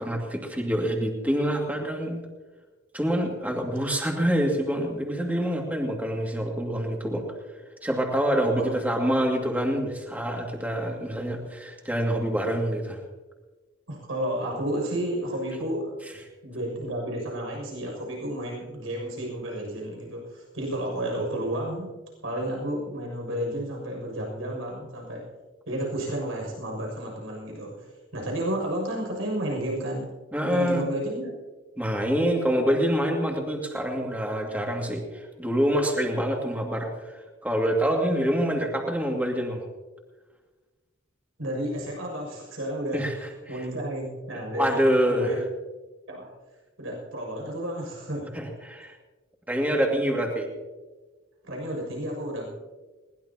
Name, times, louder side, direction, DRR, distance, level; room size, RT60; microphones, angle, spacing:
voice 1, 0.0-2.2 2.9-7.3 7.8-13.0 30.3-30.8 31.8-39.6 42.9-43.3 44.5-45.4 48.3-48.9 49.5-50.5, equal, 10° right, 0 dB, 2.4 m, -26 dB
voice 2, 13.9-16.0 16.4-21.9 22.2-25.3 25.7-27.9 28.1-30.1 30.5-31.3 41.4-43.1 43.5-45.4 46.1-46.3 46.8-48.4 51.4-52.5, right 1 dB, 90° right, -1 dB, 6.8 m, -31 dB
21.5 x 19.5 x 3.0 m, 1.3 s
head